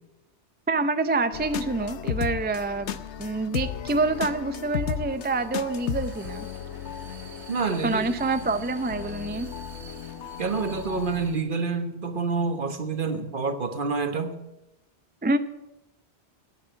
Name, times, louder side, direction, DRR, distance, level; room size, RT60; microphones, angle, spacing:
voice 1, 0.7-6.5 7.8-9.5 15.2-15.4, right 3 dB, 15° right, 10 dB, 0.4 m, -27 dB
sound 1, 1.3-11.3, left 9 dB, 80° left, 1.0 m, -35 dB
Vehicle, 2.4-11.4, right 3 dB, 75° right, 2.3 m, -49 dB
voice 2, 7.5-8.1 10.4-14.3, right 4 dB, 50° right, 8 dB, 1.4 m, -27 dB
10.0 x 9.1 x 9.2 m, 0.91 s
omnidirectional pair, 1.1 m